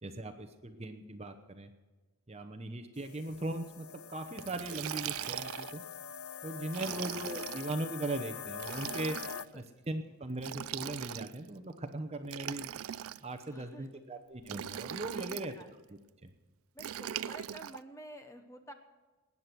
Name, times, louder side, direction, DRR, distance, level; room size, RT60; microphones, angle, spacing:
voice 1, 0.0-1.7 2.3-5.8 6.4-9.3 9.5-12.8 13.2-15.5 16.2-16.3, right 2 dB, 30° right, 7 dB, 0.9 m, -39 dB
sound 1, 3.0-9.5, left 7 dB, 70° left, 0.5 m, -44 dB
Liquid, 4.4-5.8 6.7-7.7 8.5-9.5 10.4-11.5 12.2-13.4 14.4-15.5 16.8-17.8, right 11 dB, 70° right, 0.4 m, -40 dB
voice 2, 6.8-7.1 9.3-9.7 13.5-13.9 15.1-15.7 16.7-18.7, right 1 dB, 15° left, 6 dB, 1.1 m, -50 dB
19.5 x 9.7 x 6.1 m, 1.2 s
head